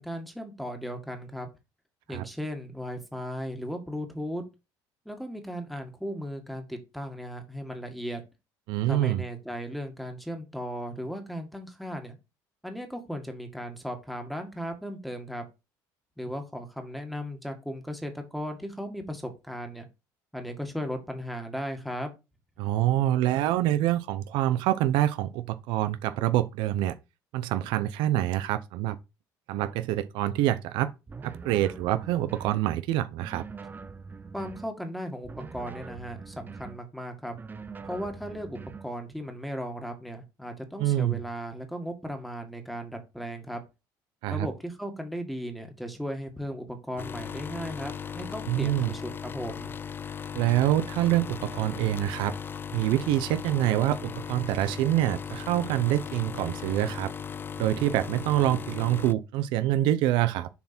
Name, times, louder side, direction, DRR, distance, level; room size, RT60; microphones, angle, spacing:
voice 1, 0.0-1.5 2.1-4.4 5.1-8.2 8.8-12.2 12.6-15.5 16.2-19.9 20.3-22.1 34.3-37.3 37.8-43.6 44.3-49.8, equal, ahead, 1.9 m, -36 dB
voice 2, 8.7-9.2 22.6-26.9 27.3-29.0 29.5-30.9 31.2-33.4 40.8-41.2 44.2-44.5 48.5-48.9 50.3-52.3 52.7-57.1 57.6-60.5, right 13 dB, 75° right, 0.6 m, -26 dB
sound 1, 31.1-32.6 33.2-34.7 35.2-36.8 37.3-38.9, right 5 dB, 25° right, 0.7 m, -43 dB
sound 2, 47.0-59.1, left 7 dB, 25° left, 0.3 m, -37 dB
7.0 x 4.4 x 4.4 m
supercardioid pair, 95°, 8 cm